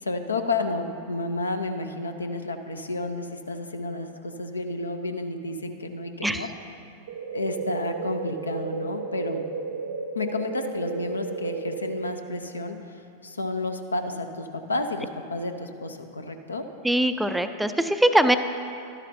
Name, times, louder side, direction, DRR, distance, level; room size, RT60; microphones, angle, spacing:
voice 1, 0.0-6.5 7.3-9.4 10.1-16.6, left 2 dB, 75° left, 7 dB, 0.6 m, -31 dB
sound 1, 7.1-12.1, right 4 dB, 60° right, 0.5 m, -33 dB
voice 2, 16.8-18.4, right 1 dB, 5° right, 9 dB, 0.3 m, -22 dB
12.0 x 10.5 x 2.6 m, 2.6 s
figure-of-eight pair, 90°, 0 cm